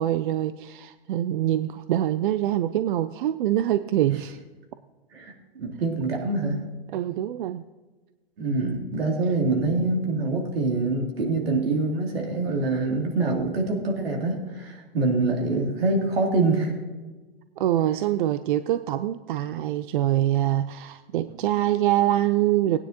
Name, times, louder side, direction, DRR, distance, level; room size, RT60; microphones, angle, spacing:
voice 1, 0.0-4.4 6.9-7.6 17.6-22.8, right 13 dB, 60° right, 12 dB, 0.4 m, -24 dB
voice 2, 5.1-6.6 8.4-16.8, right 3 dB, 80° right, 0 dB, 2.8 m, -25 dB
16.5 x 9.6 x 2.9 m, 1.2 s
hypercardioid pair, 125°, 30 cm